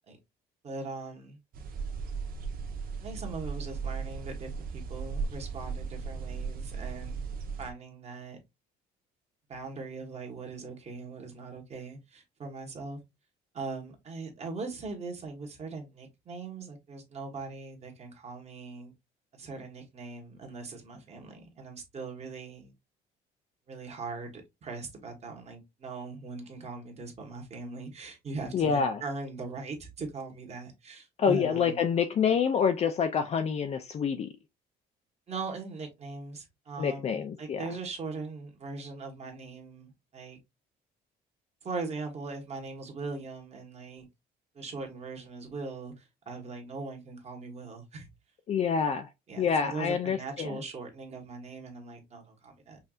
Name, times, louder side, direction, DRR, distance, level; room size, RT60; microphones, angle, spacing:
voice 1, 0.6-1.4 3.0-7.3 7.6-8.4 9.5-13.0 13.5-18.9 19.3-22.7 23.7-31.9 35.3-40.4 41.6-44.1 44.5-48.1 49.3-52.8, right 3 dB, 40° right, 1.4 m, -40 dB
sound 1, 1.5-7.7, right 5 dB, 60° right, 0.9 m, -36 dB
voice 2, 28.5-29.0 31.2-34.3 36.8-37.6 48.5-49.1 49.4-50.6, left 6 dB, 40° left, 0.4 m, -27 dB
5.5 x 2.6 x 2.4 m
cardioid pair, 110°, 17 cm